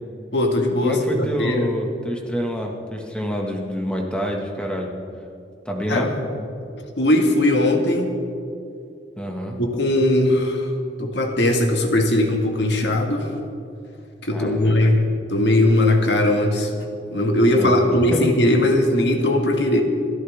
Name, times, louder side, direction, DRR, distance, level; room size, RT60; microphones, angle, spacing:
voice 1, 0.3-1.7 5.9-6.1 7.0-8.1 9.6-10.7 11.0-13.3 14.2-15.0 15.3-16.8 17.1-19.8, left 1 dB, 75° left, 3 dB, 1.8 m, -19 dB
voice 2, 0.8-4.9 5.7-6.1 9.2-9.6 14.3-15.0 17.5-17.7 18.1-18.2, equal, 5° left, 0 dB, 1.7 m, -27 dB
29.0 x 11.0 x 3.6 m, 2.6 s
head